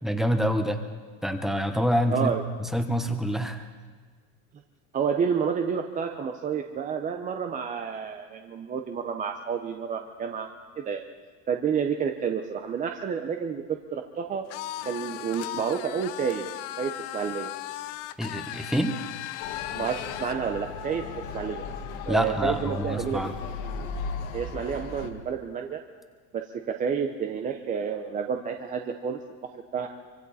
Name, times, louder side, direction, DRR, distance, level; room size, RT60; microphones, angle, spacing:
voice 1, 0.0-0.8 1.2-2.3 2.6-3.6 18.2-19.0 22.1-23.4, equal, ahead, 6 dB, 1.1 m, -26 dB
voice 2, 2.1-2.4 4.9-11.0 11.5-14.5 14.8-16.5 16.8-17.5 19.7-21.1 21.3-21.6 22.0-23.2 24.3-25.8 26.3-29.2 29.5-29.9, right 7 dB, 20° right, 5 dB, 0.8 m, -30 dB
sound 1, 14.5-20.4, left 15 dB, 90° left, 0.8 m, -37 dB
Motor vehicle (road) / Siren, 19.4-25.1, left 5 dB, 55° left, 1.9 m, -36 dB
25.0 x 25.0 x 4.2 m, 1.5 s
cardioid pair, 165°, 35 cm